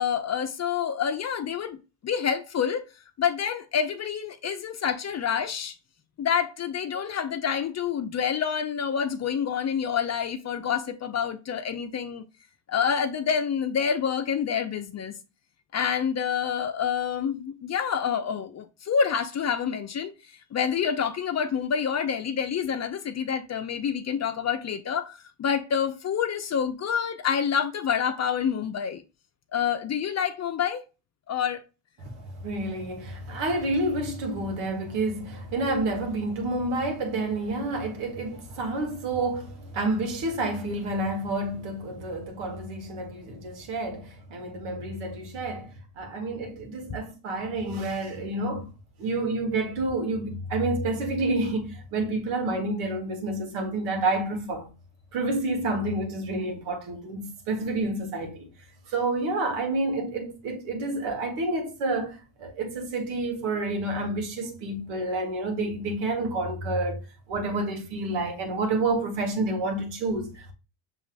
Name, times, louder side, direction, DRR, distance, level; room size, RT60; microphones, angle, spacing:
voice 1, 0.0-1.8 2.0-2.9 3.2-5.7 6.2-12.2 12.7-15.1 15.7-20.1 20.5-29.0 29.5-30.8 31.3-31.6, left 7 dB, 35° left, 0.6 m, -27 dB
voice 2, 32.0-48.7 49.0-54.7 55.1-58.5 58.9-70.5, right 2 dB, 75° right, 1.6 m, -29 dB
6.0 x 3.1 x 2.5 m
supercardioid pair, 80°, 49 cm